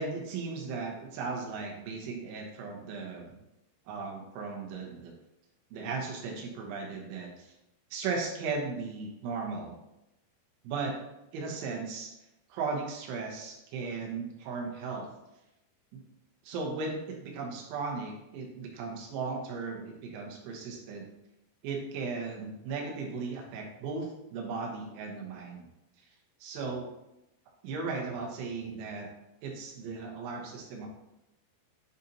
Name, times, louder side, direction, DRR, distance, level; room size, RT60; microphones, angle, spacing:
voice 1, 0.0-3.3 3.9-5.1 5.7-7.5 7.9-9.8 10.7-10.9 11.3-12.1 12.5-15.1 15.9-16.0 16.4-21.1 21.6-25.7 26.4-26.9 27.6-29.1 29.4-31.0, right 4 dB, 90° right, -1 dB, 3.6 m, -36 dB
9.0 x 3.9 x 2.8 m, 0.91 s
omnidirectional pair, 5.3 m